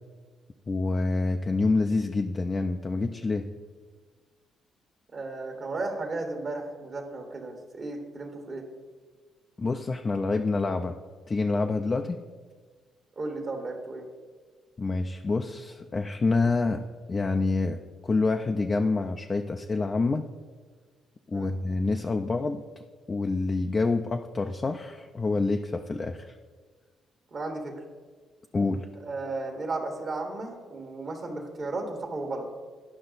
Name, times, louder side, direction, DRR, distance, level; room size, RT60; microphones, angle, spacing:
voice 1, 0.7-3.5 9.6-11.0 11.3-12.2 14.8-16.8 17.1-17.8 18.0-20.3 21.3-22.6 23.1-26.3 28.5-28.9, left 3 dB, 30° left, 4 dB, 0.4 m, -27 dB
voice 2, 5.1-8.7 13.2-14.0 21.3-21.5 27.3-27.8 29.0-32.5, right 2 dB, 45° right, 3 dB, 1.4 m, -34 dB
11.0 x 5.5 x 4.0 m, 1.5 s
cardioid pair, 90°, 0 cm